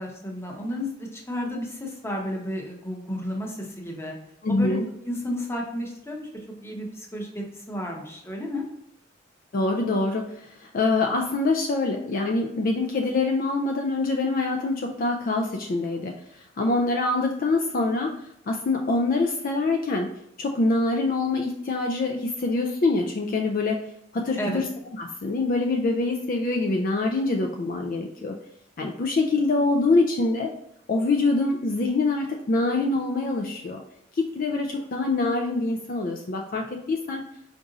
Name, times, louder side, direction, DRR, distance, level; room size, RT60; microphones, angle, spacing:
voice 1, 0.0-4.1 4.5-6.3 6.6-8.6 24.4-24.6, left 1 dB, 15° left, -1 dB, 0.8 m, -32 dB
voice 2, 4.4-4.9 9.5-20.1 20.4-23.9 24.1-24.7 25.0-28.4 28.8-30.5 30.9-33.8 34.1-37.2, left 3 dB, 45° left, 2 dB, 0.4 m, -25 dB
4.7 x 2.6 x 3.9 m, 0.76 s
head